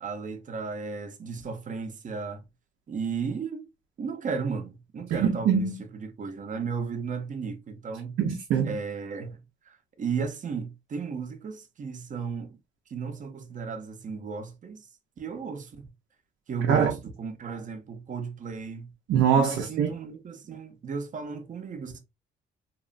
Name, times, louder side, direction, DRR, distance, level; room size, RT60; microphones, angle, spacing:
voice 1, 0.0-2.4 2.9-3.7 4.0-8.2 8.6-9.4 10.0-12.6 12.9-14.8 15.2-15.8 16.5-18.9 19.4-22.0, right 5 dB, 40° right, 0.6 m, -34 dB
voice 2, 5.1-5.8 8.2-8.8 16.7-17.0 19.1-19.9, right 7 dB, 80° right, 0.6 m, -23 dB
2.9 x 2.0 x 2.5 m
cardioid pair, 90°, 20 cm